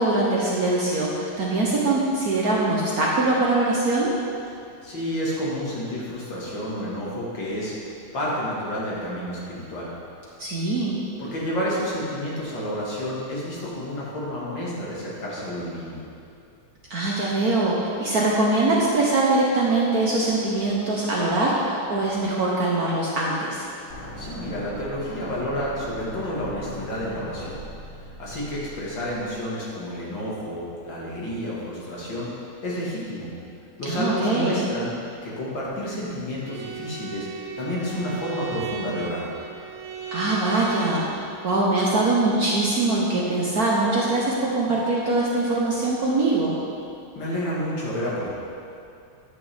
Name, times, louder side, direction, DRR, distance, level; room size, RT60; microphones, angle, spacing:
voice 1, 0.0-4.1 10.4-11.0 16.9-23.7 33.8-34.7 40.1-46.6, right 2 dB, 55° right, -5 dB, 1.1 m, -22 dB
voice 2, 4.8-7.7 8.1-9.9 11.2-16.0 24.2-27.6 28.2-32.3 32.6-33.3 33.8-34.9 35.2-39.3 47.2-48.4, equal, 60° left, -6 dB, 2.4 m, -30 dB
sound 1, 23.9-29.9, left 1 dB, 40° left, 1.4 m, -39 dB
Bowed string instrument, 36.4-41.1, right 6 dB, 75° right, 2.0 m, -36 dB
9.4 x 8.4 x 3.4 m, 2.5 s
omnidirectional pair, 2.4 m